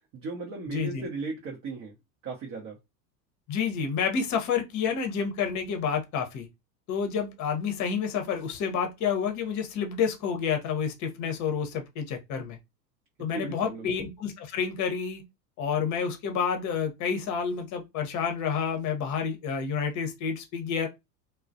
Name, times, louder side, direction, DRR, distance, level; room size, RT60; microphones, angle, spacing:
voice 1, 0.1-2.0 2.2-2.8 13.3-13.9, right 3 dB, 35° right, 0.7 m, -36 dB
voice 2, 0.7-1.1 3.5-6.5 6.9-12.6 13.2-15.2 15.6-20.9, left 6 dB, 35° left, 0.8 m, -29 dB
2.3 x 2.1 x 2.6 m
hypercardioid pair, 95°, 50 cm